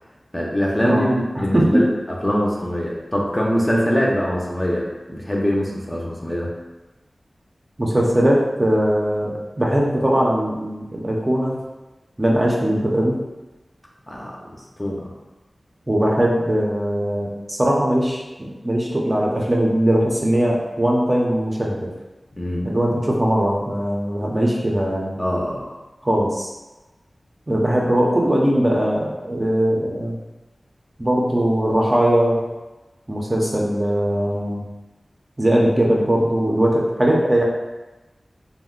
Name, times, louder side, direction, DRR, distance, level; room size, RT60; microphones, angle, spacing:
voice 1, 0.3-1.9 2.2-6.5 14.1-15.1 22.3-22.7 25.2-25.6, equal, 20° left, -3 dB, 0.5 m, -23 dB
voice 2, 1.3-1.8 7.8-11.6 12.2-13.2 15.9-21.9 22.6-25.2 26.0-26.5 27.5-30.2 31.0-32.4 33.1-34.6 35.4-37.4, right 1 dB, 30° right, -3 dB, 0.5 m, -20 dB
2.5 x 2.1 x 3.7 m, 1.1 s
wide cardioid pair, 70°, 0 cm